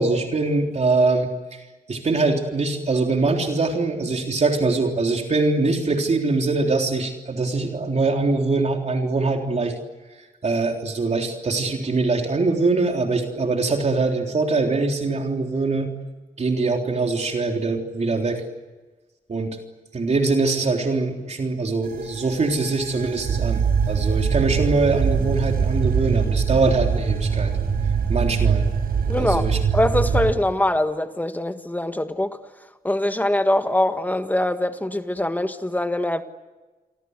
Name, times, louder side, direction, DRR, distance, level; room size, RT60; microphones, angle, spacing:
voice 1, 0.0-1.6 1.9-9.7 10.4-15.9 16.4-18.4 19.3-19.6 19.9-27.5 28.1-28.6 29.2-29.6, right 3 dB, 50° right, 3.6 m, -23 dB
sound 1, 21.8-30.3, right 6 dB, 85° right, 6.5 m, -23 dB
voice 2, 29.1-29.5 29.7-32.4 32.8-36.2, left 1 dB, 10° left, 1.6 m, -23 dB
29.5 x 24.0 x 8.1 m
wide cardioid pair, 115°, 15 cm